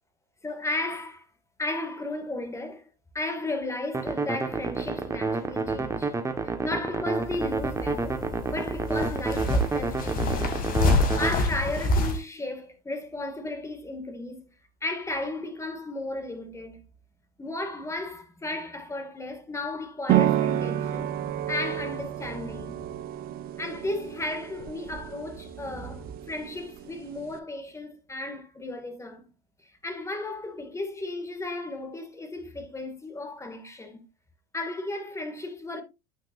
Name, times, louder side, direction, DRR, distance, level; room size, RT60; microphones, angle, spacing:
voice 1, 0.4-1.3 1.6-2.9 3.1-6.1 6.4-10.6 11.2-14.5 14.8-16.8 17.4-21.2 21.5-23.0 23.6-29.3 29.6-34.0 34.5-35.8, left 2 dB, 15° left, 2.1 m, -34 dB
sound 1, 3.9-11.3, right 3 dB, 15° right, 1.3 m, -29 dB
sound 2, 7.1-12.2, left 2 dB, 45° left, 2.3 m, -27 dB
sound 3, 20.1-27.4, right 12 dB, 45° right, 0.9 m, -30 dB
9.6 x 5.9 x 2.6 m
hypercardioid pair, 95°, 21 cm